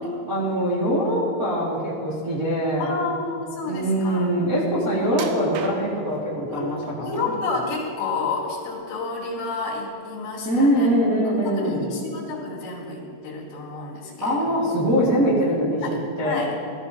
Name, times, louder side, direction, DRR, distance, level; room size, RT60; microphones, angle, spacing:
voice 1, 0.3-2.9 3.6-7.3 10.4-11.9 14.2-16.5, equal, 30° right, -6 dB, 1.5 m, -23 dB
voice 2, 2.8-4.3 6.4-6.7 7.0-10.9 11.2-14.6 15.8-16.5, left 3 dB, 80° left, -4 dB, 4.6 m, -30 dB
sound 1, 5.1-6.2 6.8-7.5 7.9-8.8 9.2-9.4 9.9-10.0, right 7 dB, 75° right, 2.5 m, -37 dB
19.0 x 13.5 x 2.8 m, 2.7 s
omnidirectional pair, 5.0 m